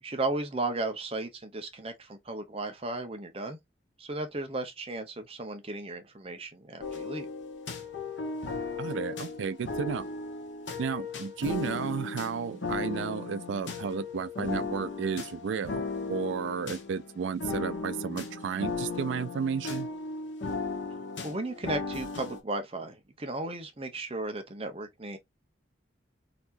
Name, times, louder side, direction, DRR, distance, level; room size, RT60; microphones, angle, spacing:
voice 1, 0.0-3.6 4.0-7.3 21.2-25.2, right 2 dB, 30° right, 0.7 m, -35 dB
sound 1, 6.8-22.4, left 3 dB, 75° left, 1.1 m, -36 dB
voice 2, 8.8-10.1 10.8-19.9, right 6 dB, 75° right, 0.3 m, -33 dB
4.1 x 2.8 x 2.6 m
head